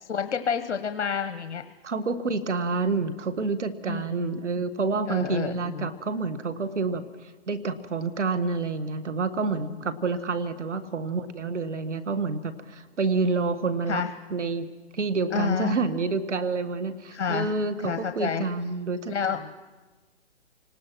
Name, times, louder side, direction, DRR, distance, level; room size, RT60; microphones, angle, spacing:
voice 1, 0.0-1.6 3.9-4.4 5.1-5.9 9.5-9.6 13.9-14.1 15.3-15.7 17.1-17.5 17.8-18.4 19.1-19.4, left 6 dB, 75° left, 8 dB, 1.2 m, -29 dB
voice 2, 1.8-14.0 14.3-14.7 14.9-19.5, right 4 dB, 85° right, 11 dB, 1.7 m, -28 dB
29.5 x 19.0 x 6.1 m, 1.3 s
hypercardioid pair, 145°, 35 cm